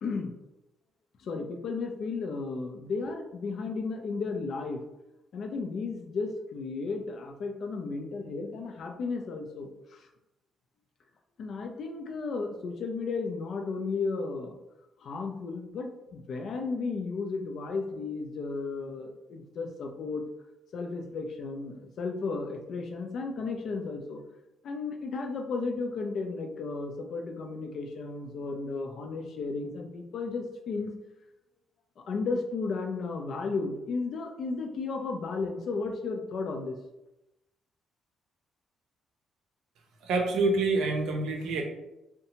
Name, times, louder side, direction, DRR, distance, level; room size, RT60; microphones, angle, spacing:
voice 1, 0.0-0.3 1.2-4.8 5.3-10.1 11.4-14.6 15.0-20.2 20.7-24.2 24.6-30.9 32.0-36.8, left 4 dB, 65° left, 4 dB, 0.4 m, -34 dB
voice 2, 40.0-41.6, right 3 dB, 85° right, 2 dB, 0.5 m, -27 dB
2.6 x 2.2 x 2.8 m, 0.93 s
cardioid pair, 90°, 0 cm